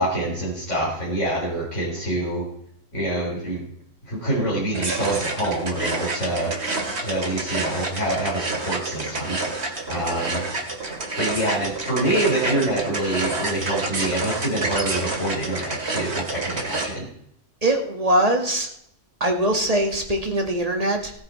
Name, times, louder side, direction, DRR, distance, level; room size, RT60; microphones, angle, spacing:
voice 1, 0.0-2.5 2.9-3.6 4.0-6.5 7.0-9.4 9.9-10.4 11.2-17.1, right 1 dB, 70° left, -5 dB, 4.3 m, -26 dB
sound 1, 4.7-16.9, right 2 dB, 60° right, 2.4 m, -28 dB
voice 2, 17.6-18.7 19.2-21.1, right 1 dB, 30° right, 2 dB, 2.1 m, -22 dB
17.0 x 8.8 x 4.4 m, 0.72 s
omnidirectional pair, 1.3 m